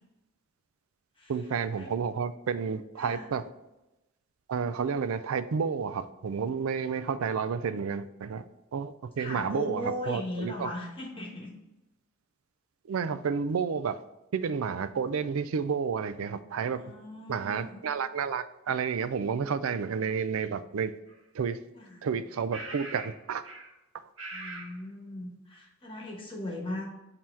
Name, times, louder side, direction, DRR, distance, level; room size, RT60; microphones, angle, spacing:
voice 1, 1.3-3.4 4.5-8.4 8.7-10.7 12.9-14.0 14.3-16.8 17.3-20.9 21.3-21.6 22.0-23.4, right 6 dB, 85° right, 13 dB, 0.4 m, -31 dB
voice 2, 3.0-3.3 9.2-11.5 16.7-17.8 21.7-22.0 24.3-26.8, left 1 dB, 25° left, -2 dB, 1.3 m, -38 dB
sound 1, 21.1-21.2 22.5-23.1 23.4-23.7 24.2-24.7, right 3 dB, 70° right, 1.3 m, -41 dB
7.4 x 2.9 x 4.5 m, 0.96 s
head